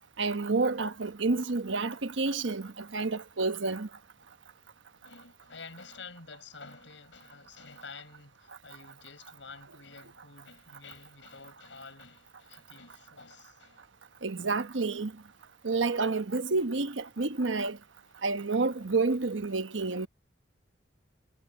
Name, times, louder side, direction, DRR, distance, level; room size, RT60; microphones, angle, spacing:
voice 1, 0.2-3.9 14.2-15.1 15.6-17.8 18.2-20.1, right 3 dB, 85° right, 1.1 m, -29 dB
voice 2, 5.0-13.9 18.2-18.3 19.9-20.0, left 4 dB, 80° left, 5.7 m, -50 dB
head